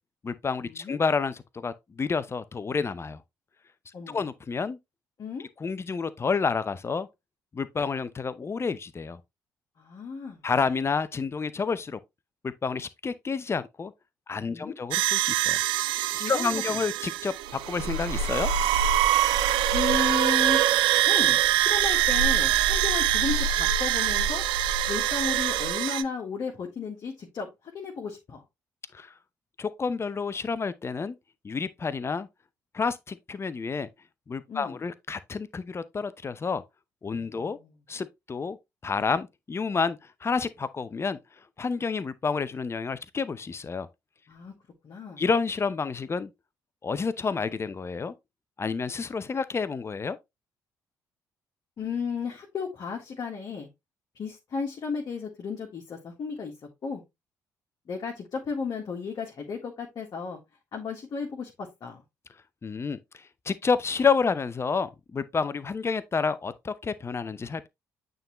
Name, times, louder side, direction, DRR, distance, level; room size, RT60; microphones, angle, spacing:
voice 1, 0.2-3.2 4.1-4.8 5.6-7.1 7.5-9.2 10.4-12.0 12.4-13.9 14.3-15.6 16.1-18.5 28.9-29.1 29.6-31.2 31.4-32.3 32.7-33.9 34.3-36.6 37.0-37.6 37.9-38.6 38.8-41.2 41.6-43.9 45.2-46.3 46.8-48.1 48.6-50.2 62.6-67.7, left 5 dB, 30° left, 0.7 m, -29 dB
voice 2, 9.8-10.4 14.5-14.7 16.1-16.8 19.7-20.6 21.1-24.4 24.9-28.4 34.5-34.8 37.3-37.7 44.3-44.5 44.8-45.2 51.8-53.7 54.1-56.5 56.8-57.0 57.9-60.4 60.7-62.0, left 5 dB, 45° left, 1.7 m, -34 dB
sound 1, 14.9-26.0, right 11 dB, 65° right, 0.5 m, -24 dB
8.9 x 3.8 x 3.0 m
figure-of-eight pair, 45°, 9 cm